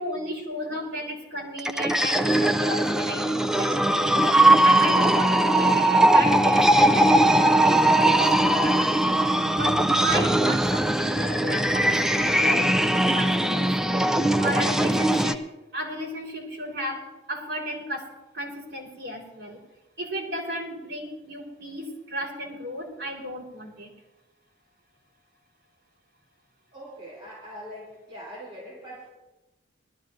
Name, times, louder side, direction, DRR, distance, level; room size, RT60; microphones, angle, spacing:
voice 1, 0.0-15.4 15.7-18.1 18.3-19.6 20.0-23.9, equal, 80° right, -4 dB, 4.3 m, -34 dB
sound 1, 1.6-15.3, right 1 dB, 5° right, 0.5 m, -20 dB
voice 2, 26.7-29.1, equal, 30° right, -7 dB, 4.1 m, -42 dB
21.5 x 13.5 x 2.6 m, 1.0 s
head